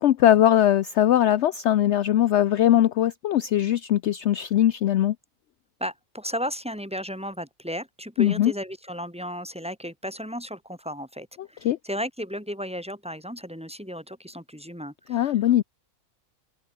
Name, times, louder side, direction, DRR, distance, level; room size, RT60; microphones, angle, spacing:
voice 1, 0.0-5.2 8.2-8.5 11.6-11.8 15.1-15.6, left 12 dB, 65° left, 0.8 m, -20 dB
voice 2, 5.8-15.5, equal, 5° right, 2.6 m, -34 dB
open air
omnidirectional pair, 1.4 m